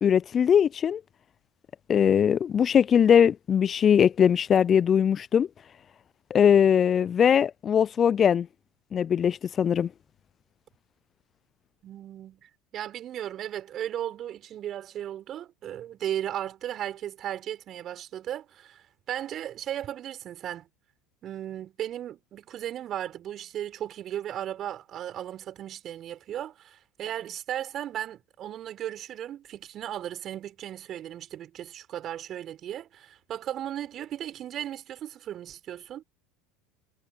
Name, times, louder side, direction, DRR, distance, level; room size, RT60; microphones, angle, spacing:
voice 1, 0.0-1.0 1.9-5.5 6.3-8.5 8.9-9.9, left 8 dB, 35° left, 0.5 m, -21 dB
voice 2, 11.8-20.7 21.2-36.0, right 11 dB, 45° right, 5.4 m, -36 dB
hypercardioid pair, 75°, 0 cm